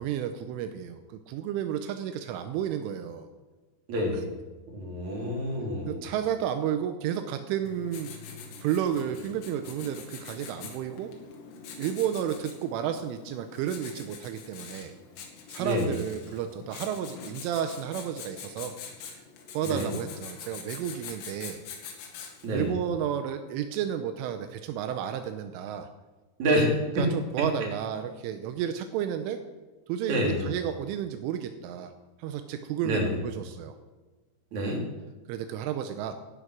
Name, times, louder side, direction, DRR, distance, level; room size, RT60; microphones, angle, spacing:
voice 1, 0.0-3.3 5.9-8.1 8.6-11.1 11.8-14.9 15.5-18.7 19.0-19.2 19.5-21.6 22.5-25.9 27.0-29.4 29.9-31.9 32.2-33.8 35.3-36.1, right 9 dB, 85° right, 8 dB, 3.2 m, -32 dB
voice 2, 3.9-4.3 4.7-6.0 15.6-16.0 19.6-19.9 22.4-22.8 26.4-26.7 27.0-27.1 30.1-30.5 32.8-33.2 34.5-34.8, equal, 40° right, -1 dB, 4.1 m, -27 dB
Writing, 7.7-22.6, left 6 dB, 85° left, 4.9 m, -44 dB
16.5 x 10.0 x 6.3 m, 1.2 s
omnidirectional pair, 5.8 m